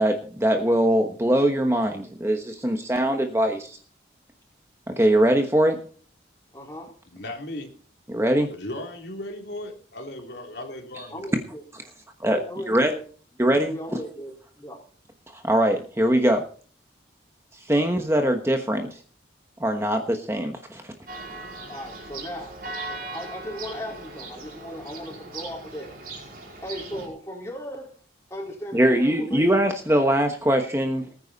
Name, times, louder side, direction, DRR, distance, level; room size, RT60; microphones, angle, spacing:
voice 1, 0.0-3.8 4.9-5.8 8.1-8.5 11.0-11.1 12.2-12.4 12.7-12.9 13.4-13.7 15.3-16.4 17.6-18.9 19.6-20.8 28.7-31.0, right 1 dB, 15° right, 5 dB, 1.1 m, -22 dB
voice 2, 6.5-6.9 11.1-11.6 12.3-13.0 13.7-14.8 21.7-25.9 26.6-27.9 28.3-29.5, equal, 15° left, -2 dB, 4.2 m, -37 dB
voice 3, 7.1-7.7 8.4-11.4, left 1 dB, 65° left, 2 dB, 3.0 m, -37 dB
Church bell, 21.1-27.1, right 2 dB, 50° right, 5.0 m, -39 dB
19.5 x 9.6 x 4.1 m, 0.43 s
head